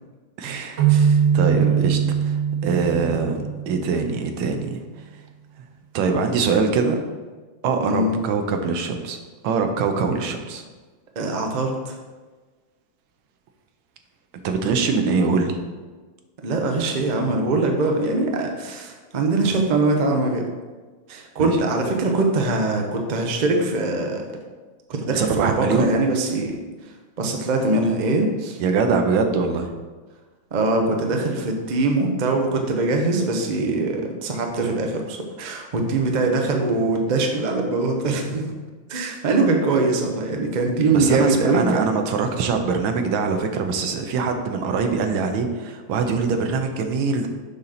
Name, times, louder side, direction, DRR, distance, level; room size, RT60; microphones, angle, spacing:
voice 1, 0.4-0.9 1.3-4.7 5.9-7.0 7.6-9.2 9.4-10.6 14.4-15.6 21.4-21.6 22.0-22.2 25.1-25.9 28.6-29.7 40.9-47.3, right 4 dB, 90° right, 5 dB, 1.6 m, -23 dB
sound 1, 0.8-4.3, right 7 dB, 45° right, 1.2 m, -21 dB
voice 2, 7.8-8.2 11.2-12.0 16.4-20.5 21.1-24.2 24.9-26.6 27.2-28.6 30.5-38.5 38.9-41.9, right 2 dB, 70° right, 2 dB, 0.4 m, -22 dB
7.0 x 5.8 x 3.9 m, 1.3 s
omnidirectional pair, 2.2 m